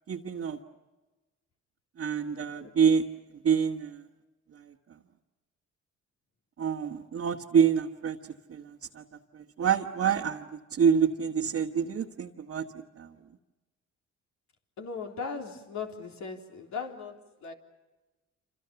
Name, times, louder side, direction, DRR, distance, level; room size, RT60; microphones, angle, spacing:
voice 1, 0.1-0.6 2.0-3.0 3.4-4.0 6.6-8.2 8.5-9.0 9.3-10.4 10.7-12.6 13.0-13.1, right 7 dB, 50° right, 1.6 m, -27 dB
voice 2, 14.8-17.5, left 5 dB, 65° left, 3.8 m, -38 dB
27.5 x 27.0 x 7.0 m
cardioid pair, 90°, 30 cm